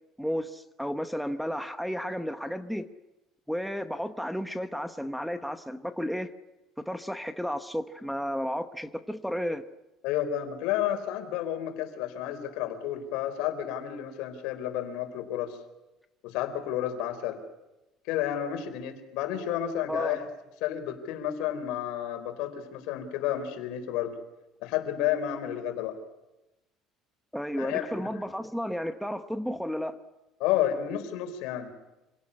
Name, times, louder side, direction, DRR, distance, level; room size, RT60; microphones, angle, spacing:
voice 1, 0.2-2.8 3.5-6.3 6.8-9.7 19.9-20.2 27.3-30.0, equal, ahead, 1.0 m, -33 dB
voice 2, 10.0-15.6 16.2-17.4 18.1-20.3 20.6-24.1 24.6-26.0 27.6-27.9 30.4-31.7, left 11 dB, 80° left, 4.1 m, -31 dB
26.5 x 18.0 x 9.8 m
cardioid pair, 145°, 0 cm